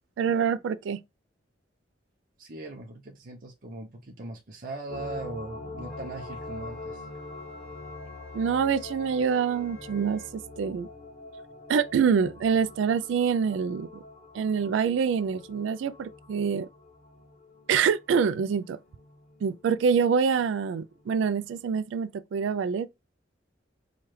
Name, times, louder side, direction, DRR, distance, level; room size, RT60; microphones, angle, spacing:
voice 1, 0.2-1.0 8.3-10.9 11.7-13.9 14.3-16.7 17.7-18.8 19.4-22.9, right 6 dB, 90° right, 0.3 m, -26 dB
voice 2, 2.4-7.1, right 2 dB, 50° right, 0.6 m, -40 dB
sound 1, 4.9-20.6 21.0-21.1, left 2 dB, 40° left, 0.9 m, -44 dB
Wind instrument woodwind instrument, 5.9-10.3, left 4 dB, 5° left, 1.1 m, -51 dB
4.6 x 2.3 x 3.1 m
head